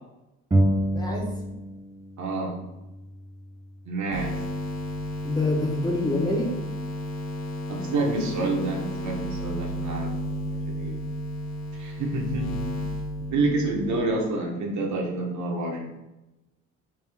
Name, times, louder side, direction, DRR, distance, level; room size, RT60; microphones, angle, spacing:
sound 1, 0.5-2.0 2.3-4.0, right 1 dB, 10° right, 0.3 m, -28 dB
voice 1, 0.8-1.3 5.2-6.5, left 2 dB, 15° left, -2 dB, 0.7 m, -26 dB
voice 2, 2.2-2.5 3.9-4.3 7.7-11.1 11.7-12.5 13.3-15.8, right 2 dB, 70° right, 1 dB, 0.8 m, -28 dB
sound 2, 4.1-14.0, equal, 60° left, 0.8 m, -32 dB
3.4 x 2.5 x 3.4 m, 0.98 s
cardioid pair, 90°, 30 cm